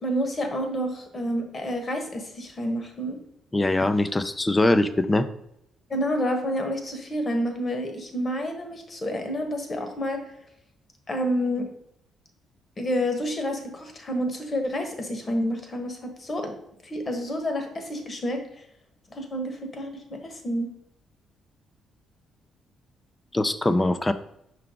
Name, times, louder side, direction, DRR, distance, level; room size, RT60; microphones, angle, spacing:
voice 1, 0.0-3.2 5.9-10.2 11.1-11.7 12.8-16.5 16.8-18.4 19.1-20.7, equal, 35° left, 5 dB, 1.4 m, -29 dB
voice 2, 3.5-5.3 23.3-24.1, left 2 dB, 20° left, 11 dB, 0.5 m, -22 dB
5.8 x 4.7 x 3.7 m, 0.77 s
cardioid pair, 90°, 0 cm